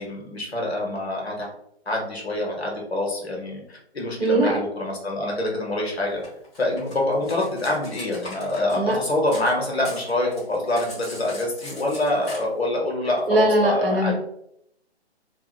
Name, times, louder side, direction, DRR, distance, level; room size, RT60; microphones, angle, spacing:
voice 1, 0.0-1.5 1.9-6.2 6.6-14.1, left 1 dB, 70° left, -1 dB, 1.0 m, -26 dB
voice 2, 4.2-4.6 8.7-9.0 13.3-14.1, right 1 dB, 60° right, 1 dB, 0.8 m, -20 dB
Cutlery silverware, 6.2-9.5 9.8-12.4, left 1 dB, 20° left, 0.8 m, -40 dB
2.8 x 2.3 x 2.3 m, 0.74 s
figure-of-eight pair, 140°, 33 cm